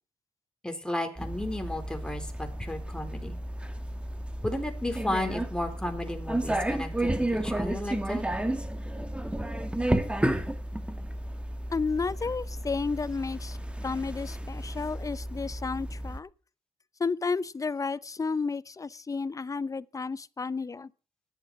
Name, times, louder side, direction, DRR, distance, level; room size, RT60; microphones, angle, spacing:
voice 1, 0.6-3.4 4.4-8.2, left 1 dB, 10° left, 4.0 m, -34 dB
sound 1, 1.2-16.2, right 1 dB, 10° right, 2.0 m, -32 dB
voice 2, 11.7-13.6 13.8-16.3 17.0-20.9, left 4 dB, 35° left, 0.7 m, -32 dB
13.5 x 11.5 x 4.8 m
cardioid pair, 65°, 10 cm